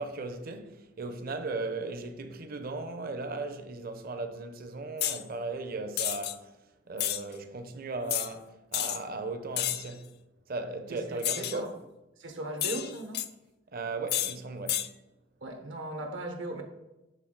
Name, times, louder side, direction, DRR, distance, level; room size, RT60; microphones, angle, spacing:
voice 1, 0.0-6.6 6.9-10.1 10.5-11.7 13.7-14.9, right 3 dB, 50° right, 0.7 m, -37 dB
sound 1, 5.0-5.2 6.0-6.3 7.0-7.2 8.1-8.3 8.7-9.0 9.6-9.9 11.2-11.6 12.6-13.3 14.1-14.3 14.7-14.9, left 12 dB, 55° left, 0.4 m, -30 dB
voice 2, 10.9-11.7 12.2-13.2 15.4-16.6, right 1 dB, 80° right, 1.1 m, -37 dB
8.2 x 3.9 x 3.8 m
head